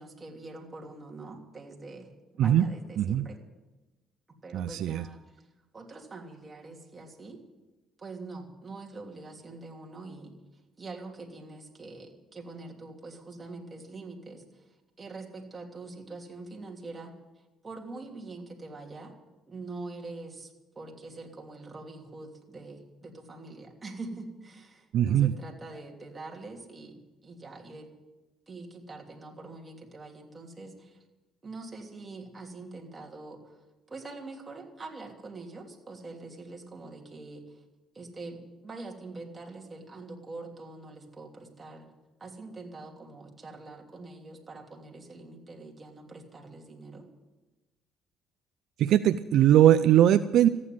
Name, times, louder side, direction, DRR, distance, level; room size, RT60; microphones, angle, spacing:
voice 1, 0.0-3.4 4.3-5.5 5.7-7.4 8.0-10.3 10.8-17.1 17.6-19.1 19.5-27.9 28.5-31.0 31.4-33.6 33.9-37.6 37.9-41.9 42.2-47.0, right 3 dB, 25° right, 1 dB, 3.0 m, -44 dB
voice 2, 3.0-3.3 4.5-5.0 24.9-25.3 48.8-50.5, right 11 dB, 70° right, 12 dB, 0.5 m, -21 dB
14.5 x 9.8 x 9.4 m, 1.1 s
cardioid pair, 90°, 0 cm